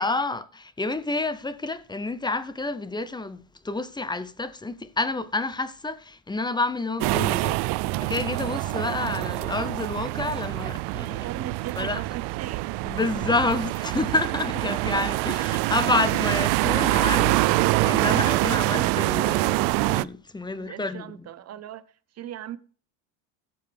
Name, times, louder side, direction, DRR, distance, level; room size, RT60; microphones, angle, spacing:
voice 1, 0.0-11.3 11.8-12.0 12.8-21.3, left 3 dB, 10° left, 0.7 m, -29 dB
sound 1, 7.0-20.0, right 20 dB, 65° right, 0.5 m, -25 dB
voice 2, 11.2-12.7 20.5-21.9 22.1-22.6, right 11 dB, 35° right, 0.9 m, -38 dB
16.5 x 7.0 x 3.4 m
supercardioid pair, 100°, 44 cm